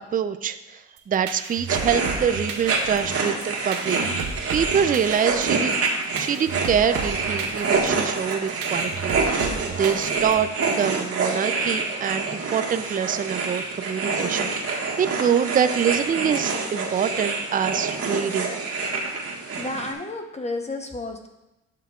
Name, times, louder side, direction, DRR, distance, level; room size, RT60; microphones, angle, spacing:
voice 1, 0.1-4.0 4.5-5.8 6.1-18.6, right 7 dB, 30° right, 10 dB, 0.4 m, -25 dB
sound 1, 1.0-10.6, right 6 dB, 80° right, 0.9 m, -34 dB
sound 2, 1.7-19.9, right 4 dB, 50° right, 1.5 m, -27 dB
voice 2, 19.6-21.3, left 2 dB, 20° left, 4 dB, 0.9 m, -31 dB
12.0 x 5.8 x 2.4 m, 0.97 s
cardioid pair, 90°, 30 cm